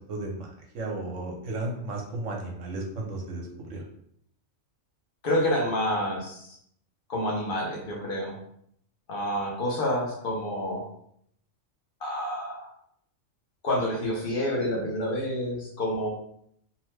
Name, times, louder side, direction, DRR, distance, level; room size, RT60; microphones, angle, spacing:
voice 1, 0.1-0.5 0.7-3.4 3.7-3.8, right 2 dB, 75° right, 0 dB, 1.0 m, -33 dB
voice 2, 5.2-6.5 7.1-8.3 9.1-10.8 12.0-12.7 13.6-16.1, left 1 dB, 50° left, -2 dB, 0.9 m, -28 dB
2.8 x 2.1 x 3.1 m, 0.69 s
omnidirectional pair, 1.3 m